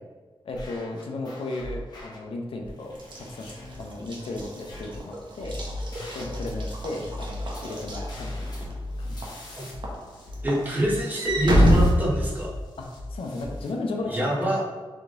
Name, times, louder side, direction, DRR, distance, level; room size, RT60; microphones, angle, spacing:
voice 1, 0.4-3.5 3.8-5.6 6.1-8.5 9.0-9.4 12.8-14.5, left 2 dB, 75° left, 1 dB, 0.6 m, -35 dB
sound 1, 0.5-2.2 2.6-3.8 4.3-5.0 5.4-13.7, left 1 dB, 45° left, 1.4 m, -38 dB
Walk footsteps / Slam, 3.0-8.7 9.2-9.5 9.8-12.8, equal, 55° right, 1.0 m, -26 dB
voice 2, 10.4-12.6 14.0-14.6, equal, 20° right, -5 dB, 1.3 m, -25 dB
3.7 x 3.5 x 3.8 m, 1.4 s
wide cardioid pair, 90°, 10 cm